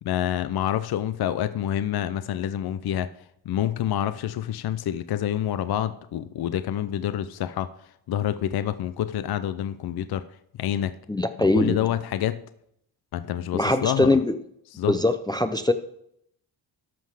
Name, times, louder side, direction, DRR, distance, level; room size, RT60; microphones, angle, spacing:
voice 1, 0.0-10.2 10.6-10.9 11.5-12.4 13.1-14.2 14.7-14.9, left 11 dB, 55° left, 13 dB, 0.6 m, -27 dB
voice 2, 11.1-11.8 13.5-14.3 14.9-15.7, left 2 dB, 10° left, 9 dB, 0.5 m, -22 dB
13.0 x 5.6 x 4.9 m, 0.73 s
cardioid pair, 80°, 46 cm